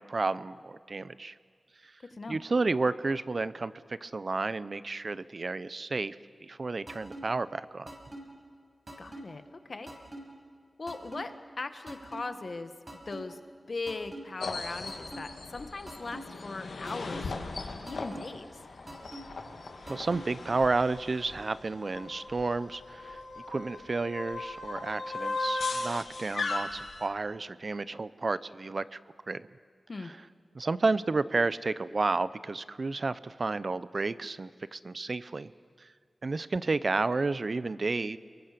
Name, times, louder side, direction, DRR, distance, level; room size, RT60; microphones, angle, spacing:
voice 1, 0.0-1.3 1.8-1.9 2.3-6.2 6.4-7.9 19.9-23.2 23.5-29.0 29.3-29.5 30.0-30.1 30.5-35.5 35.8-35.9 36.2-38.2, right 3 dB, 55° right, 16 dB, 0.7 m, -31 dB
sound 1, 6.9-7.2 7.9-8.2 8.9-9.2 9.9-10.2 10.9-11.2 11.9-12.2 12.9-13.2 13.9-14.2 14.9-15.2 15.9-16.2 16.9-17.2 17.9-18.2 18.9-19.2 19.9-20.2, right 1 dB, 40° right, 7.3 m, -42 dB
voice 2, 9.0-9.9 10.8-11.3 11.6-12.7 13.1-13.4 13.7-17.6 17.8-18.4 29.9-30.1, left 3 dB, 60° left, 9 dB, 1.6 m, -39 dB
sound 2, 14.4-27.1, left 3 dB, 85° left, 2.0 m, -38 dB
28.5 x 23.0 x 6.9 m, 2.1 s
wide cardioid pair, 60°, 0 cm